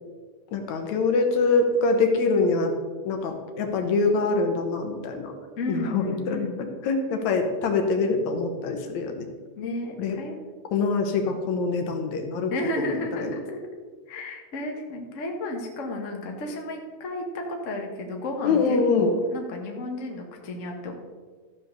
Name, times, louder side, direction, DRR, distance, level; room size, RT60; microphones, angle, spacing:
voice 1, 0.5-2.7 3.1-5.3 5.7-6.4 6.9-9.3 10.0-10.2 10.7-12.5 12.8-12.9 13.2-13.3 18.4-19.1, left 4 dB, 70° left, 4 dB, 2.3 m, -24 dB
voice 2, 5.6-6.6 9.5-10.3 12.5-13.7 14.1-20.9, left 2 dB, 40° left, 2 dB, 1.0 m, -33 dB
13.5 x 5.1 x 6.7 m, 1.5 s
omnidirectional pair, 3.6 m